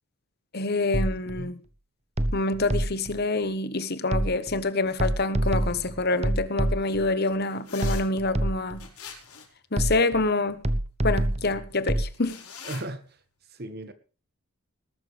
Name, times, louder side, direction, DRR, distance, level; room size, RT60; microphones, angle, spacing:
voice 1, 0.5-1.6 2.3-8.8 9.7-10.6 11.0-12.4, left 2 dB, 45° left, 1.1 m, -26 dB
sound 1, 0.9-1.5 2.2-3.2 4.1-4.6 5.0-7.1 7.8-8.9 9.8-10.3 10.6-12.1, right 1 dB, 30° right, 0.9 m, -27 dB
voice 2, 1.2-1.5 12.6-13.0 13.5-13.9, right 1 dB, 45° right, 1.6 m, -36 dB
sound 2, 7.6-8.0 8.8-9.6 12.1-12.8, left 6 dB, 85° left, 4.9 m, -42 dB
20.0 x 12.0 x 3.4 m
head